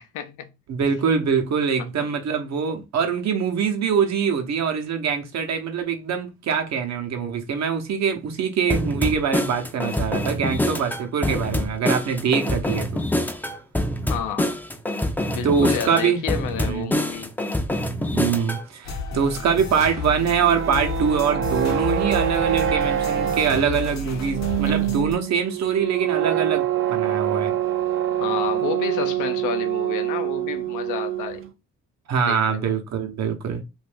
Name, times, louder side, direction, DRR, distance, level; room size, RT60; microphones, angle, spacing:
voice 1, 0.0-0.5 14.1-14.5 15.3-17.3 24.7-25.2 28.2-31.4 32.2-32.8, left 8 dB, 90° left, 0.6 m, -31 dB
voice 2, 0.7-13.0 15.4-16.2 16.6-16.9 18.1-27.5 32.1-33.6, right 6 dB, 60° right, 0.9 m, -24 dB
sound 1, 8.7-18.6, left 1 dB, 5° left, 0.4 m, -25 dB
sound 2, 18.8-25.1, left 4 dB, 65° left, 0.9 m, -32 dB
sound 3, 20.3-31.5, right 11 dB, 45° right, 0.5 m, -25 dB
2.6 x 2.5 x 3.4 m
cardioid pair, 90°, 30 cm